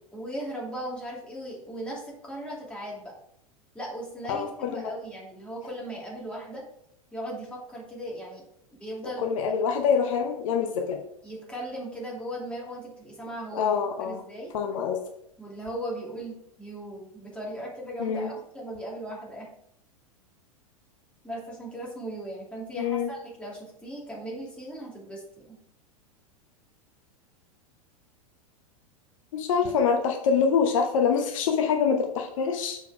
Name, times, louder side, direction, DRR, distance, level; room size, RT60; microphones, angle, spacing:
voice 1, 0.1-3.1 3.7-6.6 7.1-8.4 8.7-9.3 11.2-13.7 14.0-14.5 15.4-19.5 21.2-25.6 29.6-29.7, right 1 dB, 5° left, -4 dB, 2.7 m, -38 dB
voice 2, 4.3-4.8 9.2-11.0 13.5-14.2 14.5-15.0 18.0-18.3 22.8-23.1 29.3-32.8, left 6 dB, 60° left, 3 dB, 0.9 m, -25 dB
6.8 x 4.7 x 4.9 m, 0.74 s
figure-of-eight pair, 95°, 19 cm